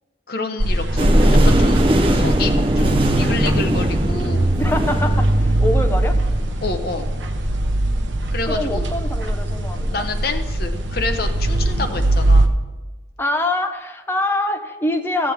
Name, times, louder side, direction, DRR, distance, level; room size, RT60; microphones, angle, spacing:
voice 1, 0.3-1.1 1.4-1.9 2.1-4.5 6.6-7.1 8.3-8.9 9.9-12.5, left 3 dB, 50° left, 6 dB, 0.8 m, -28 dB
sound 1, 0.6-12.5, right 1 dB, 75° right, 0.8 m, -20 dB
sound 2, 1.0-6.6, right 1 dB, 30° right, 0.7 m, -21 dB
voice 2, 4.6-6.2 8.5-10.1 13.2-15.3, left 2 dB, 10° left, 5 dB, 0.6 m, -24 dB
14.5 x 7.5 x 3.5 m, 1.2 s
head